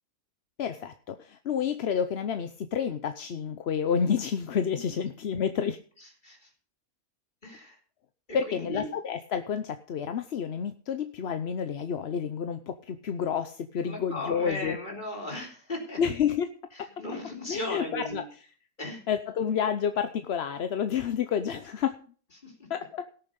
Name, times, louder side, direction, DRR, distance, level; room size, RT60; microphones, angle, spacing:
voice 1, 0.6-5.8 8.3-14.8 16.0-16.5 16.8-16.9 17.5-18.2 19.1-22.0 22.7-23.1, left 7 dB, 55° left, 9 dB, 0.9 m, -29 dB
voice 2, 6.0-6.5 7.4-7.8 8.3-8.9 13.8-16.0 16.8-18.2 18.8-19.0 22.4-22.7, left 2 dB, 30° left, 0 dB, 4.0 m, -37 dB
17.5 x 7.0 x 5.2 m, 0.42 s
omnidirectional pair, 1.5 m